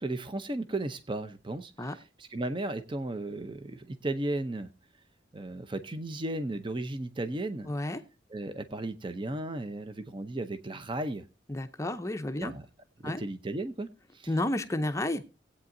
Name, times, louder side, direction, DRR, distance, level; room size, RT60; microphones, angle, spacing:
voice 1, 0.0-4.7 5.3-7.7 8.3-11.2 12.4-12.7 13.0-14.3, right 2 dB, 25° right, 11 dB, 0.6 m, -35 dB
voice 2, 7.7-8.0 11.5-12.5 13.0-13.2 14.3-15.2, left 1 dB, 15° left, 8 dB, 0.6 m, -31 dB
18.5 x 8.6 x 2.6 m, 0.30 s
head